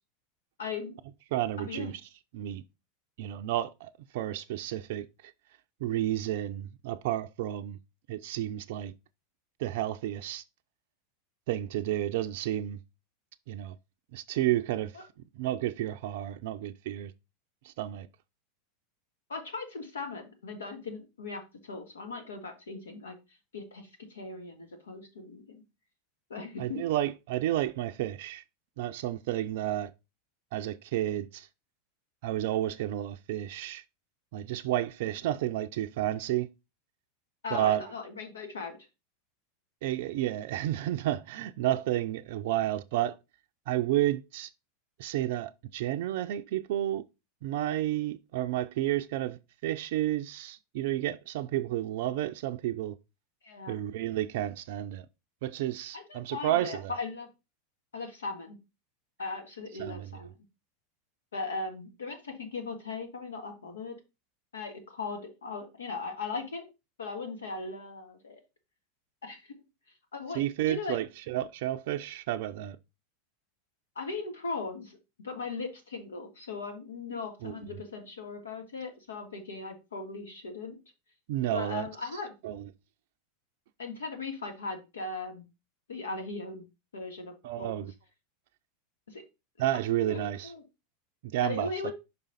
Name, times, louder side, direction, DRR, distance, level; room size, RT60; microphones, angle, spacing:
voice 1, 0.6-1.0 1.6-1.9 14.9-15.0 19.3-23.2 23.5-25.6 26.3-26.8 37.4-38.8 53.4-53.8 55.9-57.3 57.9-58.6 59.2-60.3 61.3-64.0 64.5-66.7 67.0-68.4 69.2-69.6 70.1-71.0 74.0-75.0 75.2-80.8 81.5-82.3 83.8-85.4 85.9-86.7 86.9-87.9 89.1-89.2 90.0-90.6 91.4-91.9, left 4 dB, 80° left, 1.6 m, -38 dB
voice 2, 1.3-1.9 2.3-2.6 3.2-5.1 5.8-7.8 8.1-8.9 9.6-10.4 11.5-12.8 13.5-13.8 14.1-14.9 15.4-17.1 17.6-18.1 26.6-28.4 28.8-29.9 30.5-31.5 32.2-33.8 34.3-36.5 37.5-37.8 39.8-43.2 43.7-44.5 45.0-47.0 47.4-53.0 53.7-55.1 55.4-56.9 59.8-60.1 70.3-72.8 77.4-77.6 81.3-81.9 82.4-82.6 87.4-87.9 89.6-90.5 91.2-91.9, right 13 dB, 65° right, 0.4 m, -31 dB
5.5 x 5.1 x 4.0 m
hypercardioid pair, 90°, 0 cm